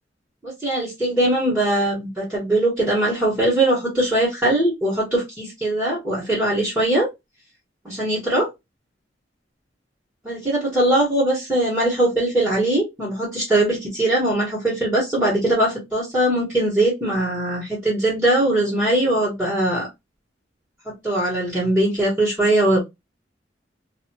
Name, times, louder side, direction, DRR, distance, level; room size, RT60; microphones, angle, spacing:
voice 1, 0.4-7.1 7.8-8.5 10.2-19.9 20.8-22.8, right 1 dB, 10° right, -9 dB, 1.4 m, -21 dB
2.7 x 2.6 x 2.7 m, 0.20 s
head